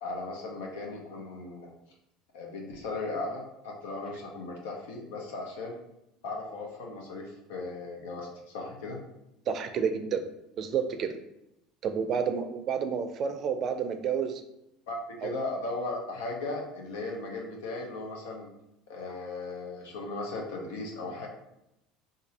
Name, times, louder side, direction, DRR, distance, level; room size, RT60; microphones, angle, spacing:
voice 1, 0.0-1.7 2.3-5.8 6.2-9.0 14.9-18.5 18.9-21.3, left 2 dB, 85° left, 0 dB, 0.8 m, -37 dB
voice 2, 9.5-10.3 10.6-11.2 11.8-14.4 15.2-15.3, right 6 dB, 45° right, 8 dB, 0.4 m, -30 dB
2.6 x 2.6 x 4.1 m, 0.84 s
supercardioid pair, 100°, 0 cm